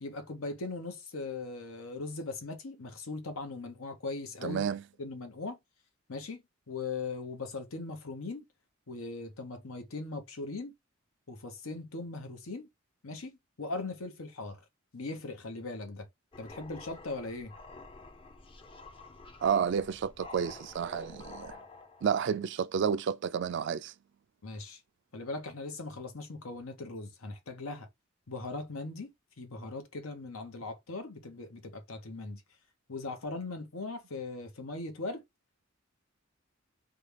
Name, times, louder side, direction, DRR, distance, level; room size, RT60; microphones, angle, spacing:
voice 1, 0.0-4.6 5.0-5.6 6.1-8.4 8.9-10.7 11.3-12.7 13.0-14.6 14.9-16.1 16.4-17.5 24.4-24.8 25.1-27.9 28.3-32.4 32.9-35.2, left 3 dB, 90° left, 0.9 m, -39 dB
voice 2, 4.4-4.8 19.4-21.5 22.0-23.9, right 7 dB, 55° right, 0.3 m, -30 dB
sound 1, 16.3-22.3, left 2 dB, 25° left, 0.5 m, -50 dB
3.6 x 2.3 x 3.3 m
head